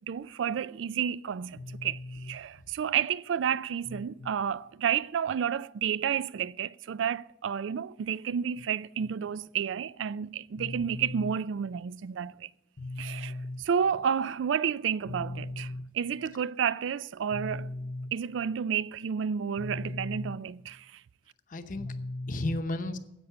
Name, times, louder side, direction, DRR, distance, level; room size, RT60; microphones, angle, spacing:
voice 1, 0.1-2.0 2.2-12.5 13.0-13.3 13.6-17.7 18.1-20.9, right 8 dB, 75° right, 0.3 m, -31 dB
voice 2, 1.5-2.6 3.8-4.3 9.0-9.1 10.6-11.4 12.8-13.6 15.1-15.9 17.3-18.1 19.6-20.4 21.5-23.0, left 2 dB, 45° left, 0.9 m, -36 dB
10.0 x 8.0 x 7.0 m
head